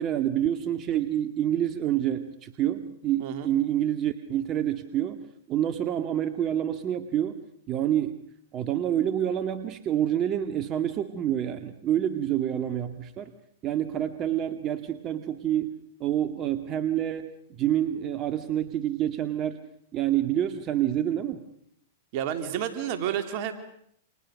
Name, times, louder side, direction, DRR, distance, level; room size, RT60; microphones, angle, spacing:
voice 1, 0.0-5.2 5.5-7.4 7.7-8.2 8.5-13.3 13.6-15.7 16.0-19.6 19.9-21.4, right 11 dB, 35° right, 8 dB, 1.9 m, -27 dB
voice 2, 22.1-23.7, right 9 dB, 50° right, 7 dB, 3.1 m, -30 dB
30.0 x 28.0 x 6.5 m, 0.69 s
hypercardioid pair, 115°, 0 cm